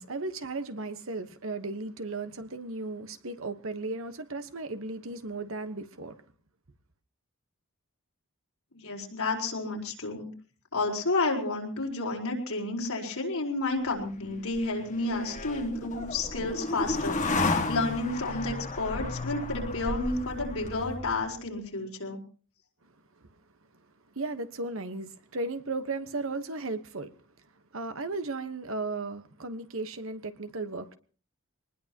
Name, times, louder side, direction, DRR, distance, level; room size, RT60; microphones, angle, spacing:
voice 1, 0.0-6.1 23.2-23.3 24.1-27.1 27.7-30.9, right 3 dB, 65° right, 1.2 m, -35 dB
voice 2, 8.7-10.3 10.7-22.2, left 2 dB, 75° left, 4.6 m, -31 dB
sound 1, 14.0-21.4, left 2 dB, 35° left, 1.9 m, -33 dB
24.0 x 20.0 x 3.0 m
head